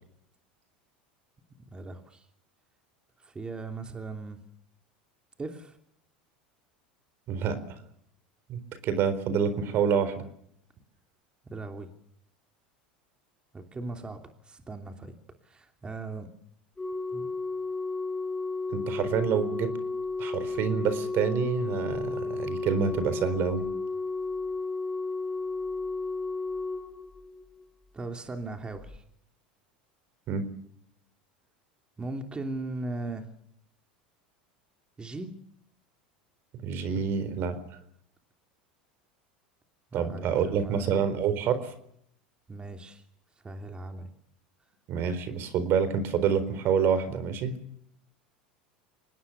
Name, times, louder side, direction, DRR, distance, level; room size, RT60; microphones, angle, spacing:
voice 1, 1.7-2.3 3.2-4.4 5.4-5.8 11.4-11.9 13.5-15.1 15.4-16.3 17.1-17.3 27.9-29.0 32.0-33.3 35.0-35.4 39.9-40.9 42.5-43.0 43.4-44.1, right 2 dB, 20° right, 5 dB, 3.0 m, -38 dB
voice 2, 7.3-7.8 8.5-10.2 18.7-19.7 20.2-23.7 30.3-30.4 36.6-37.8 39.9-41.7 44.9-47.5, right 7 dB, 50° right, 13 dB, 4.2 m, -27 dB
Organ, 16.8-27.6 28.8-29.0, left 3 dB, 15° left, 2.0 m, -33 dB
25.5 x 19.5 x 7.1 m, 0.71 s
hypercardioid pair, 90°, 5 cm